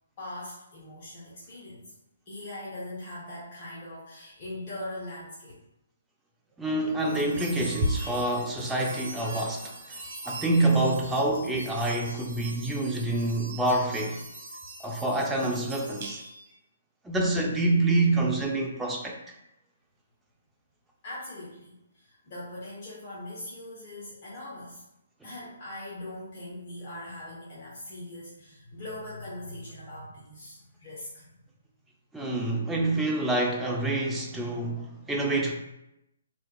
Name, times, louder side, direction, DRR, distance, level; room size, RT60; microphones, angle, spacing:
voice 1, 0.2-1.9 2.3-5.6 21.0-24.8 25.2-31.3, left 1 dB, 40° left, -7 dB, 0.9 m, -41 dB
voice 2, 6.6-10.0 10.2-14.2 14.8-16.2 17.0-19.3 32.1-35.5, right 2 dB, 5° right, 0 dB, 0.4 m, -27 dB
sound 1, 7.0-16.5, right 1 dB, 40° right, 1.3 m, -38 dB
3.4 x 2.9 x 2.3 m, 0.86 s
figure-of-eight pair, 135°, 0 cm